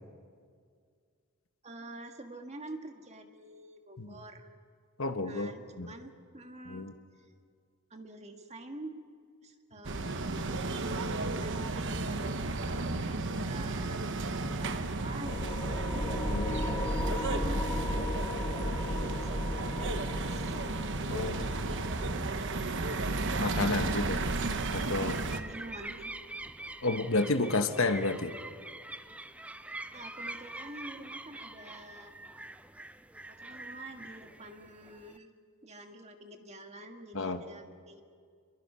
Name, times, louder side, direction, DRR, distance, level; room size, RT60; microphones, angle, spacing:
voice 1, 1.6-4.5 5.2-7.3 7.9-8.9 9.4-16.1 17.0-20.7 21.2-22.6 25.3-26.1 29.9-32.1 33.3-35.3 35.6-38.0, right 2 dB, 30° right, 5 dB, 1.6 m, -47 dB
voice 2, 5.0-5.5 5.8-5.9 6.7-6.9 16.3-16.6 21.1-21.4 23.4-24.2 24.7-25.2 26.8-28.4 37.1-37.4, left 2 dB, 60° left, 8 dB, 1.2 m, -30 dB
sound 1, 9.8-25.4, right 3 dB, 55° right, 1.1 m, -33 dB
sound 2, 15.3-26.3, left 1 dB, 20° left, 1.2 m, -36 dB
sound 3, 22.7-35.2, right 2 dB, 5° right, 0.5 m, -45 dB
29.5 x 22.0 x 5.7 m, 2.1 s
head